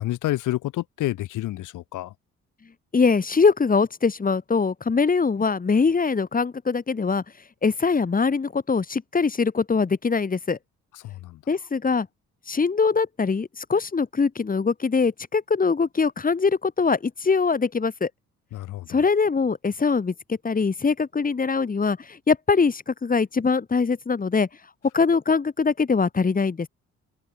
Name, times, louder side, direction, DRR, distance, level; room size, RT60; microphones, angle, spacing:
voice 1, 0.0-2.1 10.9-11.4 18.5-18.9, left 15 dB, 85° left, 1.6 m, -29 dB
voice 2, 2.9-7.2 7.6-10.6 11.5-12.1 12.5-18.1 18.9-24.5 24.9-26.7, left 5 dB, 30° left, 2.3 m, -22 dB
open air
cardioid pair, 90°, 30 cm